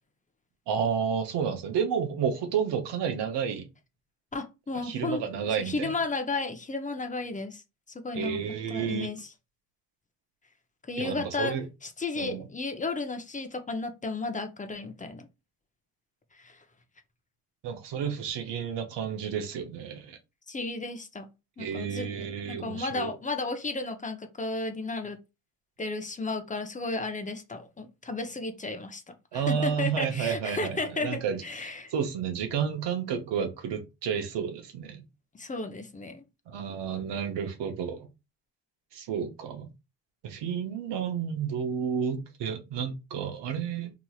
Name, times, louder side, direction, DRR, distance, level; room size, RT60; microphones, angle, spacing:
voice 1, 0.7-3.7 4.8-5.9 8.1-9.1 11.0-11.7 12.2-12.5 17.6-20.2 21.6-23.1 29.3-35.0 36.5-38.1 38.9-39.7 40.2-43.9, right 7 dB, 65° right, 0.9 m, -31 dB
voice 2, 4.3-5.2 5.6-7.6 8.0-8.4 8.7-9.3 10.9-11.6 11.8-15.3 16.4-16.6 20.5-25.2 25.8-31.9 35.3-36.2, left 3 dB, 15° left, 0.6 m, -33 dB
3.0 x 2.9 x 2.4 m
supercardioid pair, 70°, 45 cm